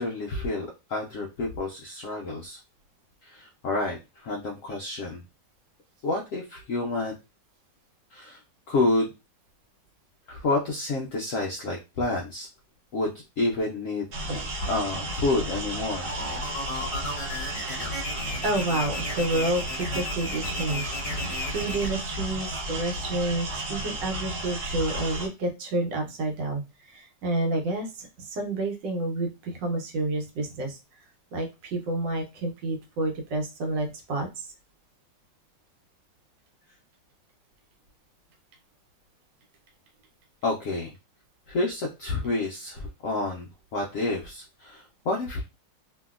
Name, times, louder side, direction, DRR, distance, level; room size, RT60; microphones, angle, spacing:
voice 1, 0.0-2.6 3.2-5.2 6.0-7.1 8.1-8.4 8.7-9.1 10.3-12.5 12.9-14.1 14.7-16.1 40.4-40.9 41.5-45.4, left 2 dB, 75° left, -1 dB, 0.7 m, -29 dB
sound 1, 14.1-25.3, right 1 dB, 55° right, 1.0 m, -33 dB
sound 2, 16.1-21.9, left 2 dB, 35° left, 0.9 m, -35 dB
voice 2, 18.4-30.8 31.3-34.5, right 2 dB, 75° right, 3 dB, 1.4 m, -29 dB
2.9 x 2.6 x 2.3 m, 0.26 s
omnidirectional pair, 2.0 m